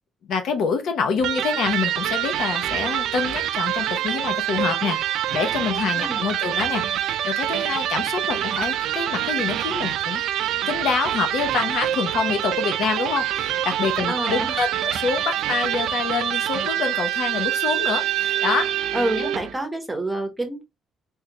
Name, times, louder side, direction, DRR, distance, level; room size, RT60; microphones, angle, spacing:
voice 1, 0.3-18.8 19.2-19.3, left 5 dB, 70° left, 0.8 m, -26 dB
Electric guitar, 1.2-19.6, right 11 dB, 85° right, 0.4 m, -25 dB
voice 2, 14.1-14.6 18.9-20.6, right 1 dB, 10° right, 1.0 m, -27 dB
3.6 x 3.2 x 2.9 m
cardioid pair, 150°, 0 cm